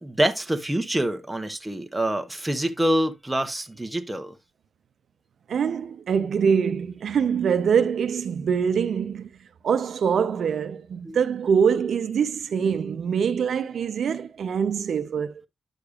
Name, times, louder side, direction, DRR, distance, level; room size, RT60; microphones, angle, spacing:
voice 1, 0.0-4.4 11.1-11.2, right 1 dB, 5° right, 0.8 m, -26 dB
voice 2, 5.5-9.4 9.6-15.3, right 7 dB, 60° right, 0.6 m, -24 dB
9.7 x 6.6 x 2.4 m
wide cardioid pair, 160°, 0 cm